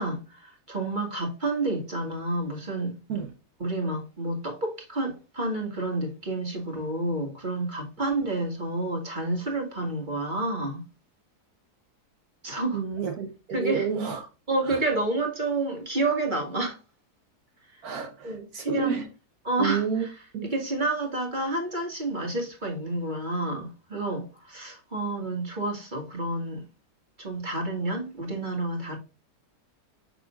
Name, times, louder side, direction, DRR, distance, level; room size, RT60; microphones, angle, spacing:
voice 1, 0.0-2.9 3.6-10.8 12.4-12.8 13.5-13.9 14.5-16.8 18.2-19.0 19.4-20.1 20.5-26.6 27.2-29.0, right 2 dB, 30° right, 1.9 m, -29 dB
voice 2, 12.7-14.3 14.6-14.8 17.8-19.1 19.6-20.1 20.3-20.5, right 6 dB, 70° right, 1.4 m, -30 dB
6.6 x 6.2 x 2.4 m
omnidirectional pair, 1.7 m